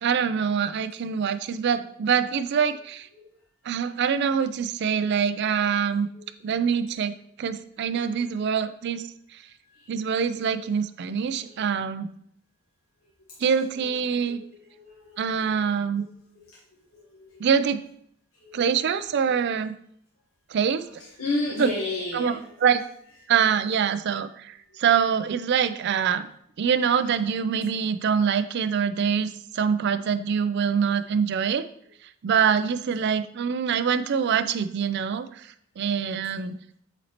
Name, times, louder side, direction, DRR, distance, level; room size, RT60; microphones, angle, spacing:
voice 1, 0.0-3.1 3.6-6.1 6.4-9.4 9.9-12.1 13.4-14.4 15.2-16.0 17.4-17.8 18.5-19.7 20.5-20.9 21.6-21.7 22.1-22.3 22.6-22.8 23.3-26.3 26.6-31.6 32.2-36.6, right 7 dB, 55° right, 12 dB, 0.4 m, -25 dB
voice 2, 7.8-8.5 9.6-10.0 10.3-10.7 11.4-11.7 13.3-13.4 13.7-15.4 16.0-16.1 16.3-16.5 16.9-17.5 18.3-18.6 20.9-22.6 24.9-25.0 27.0-27.1 27.6-27.7, left 2 dB, 75° left, -4 dB, 1.2 m, -35 dB
8.0 x 4.1 x 2.9 m, 0.68 s
head